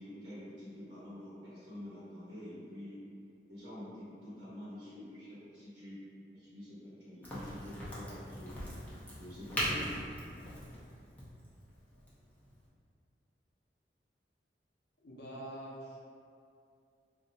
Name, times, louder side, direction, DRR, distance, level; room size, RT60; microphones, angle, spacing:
voice 1, 0.0-3.0 3.5-6.0 6.3-8.5 9.0-10.0, left 1 dB, 85° right, -11 dB, 1.0 m, -47 dB
Crack, 7.2-12.7, equal, 10° left, 0.6 m, -40 dB
voice 2, 15.0-16.0, right 1 dB, 60° left, -5 dB, 0.6 m, -45 dB
2.5 x 2.0 x 3.9 m, 2.5 s
head